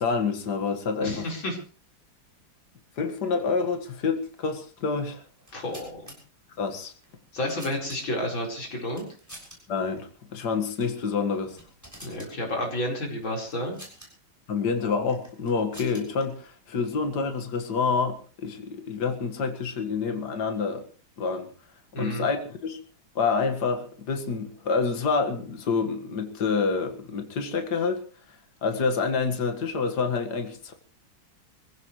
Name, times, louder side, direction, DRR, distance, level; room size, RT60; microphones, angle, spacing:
voice 1, 0.0-1.3 3.0-5.2 6.6-6.9 9.7-11.6 14.5-20.8 21.2-21.5 22.0-22.8 23.2-28.0 28.6-30.7, left 5 dB, 55° left, 5 dB, 2.4 m, -27 dB
voice 2, 1.0-1.6 5.5-6.1 7.3-9.1 12.0-13.8 21.9-22.3, left 1 dB, 75° left, 0 dB, 5.5 m, -31 dB
sound 1, 5.4-6.2 7.0-8.3 8.9-9.6 9.9-10.0 10.7-11.0 11.3-12.3 13.5-14.1 15.1-16.2, equal, 10° right, 6.8 m, -47 dB
24.5 x 16.0 x 3.3 m, 0.38 s
omnidirectional pair, 2.1 m